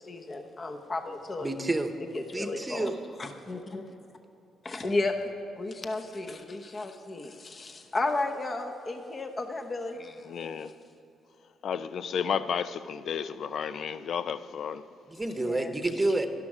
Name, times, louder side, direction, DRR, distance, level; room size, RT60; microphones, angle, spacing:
voice 1, 0.0-1.5 2.1-2.9 3.2-3.9 4.6-10.3 15.3-15.7, left 2 dB, 30° left, 0.8 m, -33 dB
voice 2, 1.4-1.9 2.3-2.9 15.1-16.3, right 2 dB, 15° right, 0.9 m, -29 dB
voice 3, 10.3-10.7 11.6-14.8, left 7 dB, 60° left, 0.5 m, -32 dB
12.0 x 12.0 x 4.9 m
cardioid pair, 90°, 0 cm